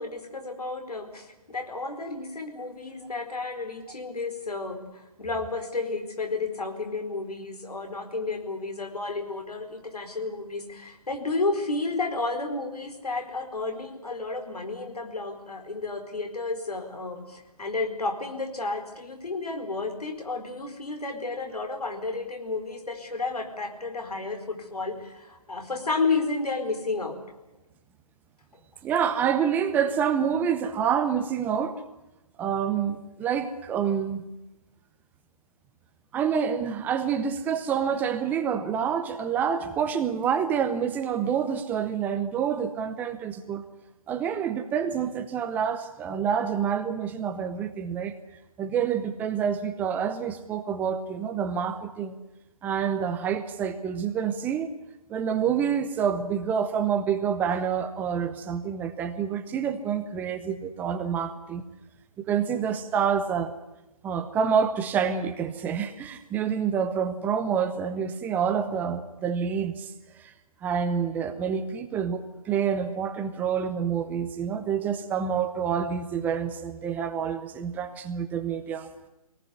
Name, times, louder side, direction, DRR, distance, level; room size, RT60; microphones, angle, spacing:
voice 1, 0.0-27.2, left 3 dB, 80° left, 6 dB, 4.6 m, -32 dB
voice 2, 28.8-31.8 32.4-34.2 36.1-43.6 44.1-48.1 48.6-52.2 52.6-54.7 55.1-61.6 62.2-63.5 64.0-69.9 70.2-70.3 70.6-78.9, right 7 dB, 10° right, 8 dB, 0.7 m, -27 dB
21.5 x 18.5 x 9.6 m, 0.99 s
figure-of-eight pair, 150°, 19 cm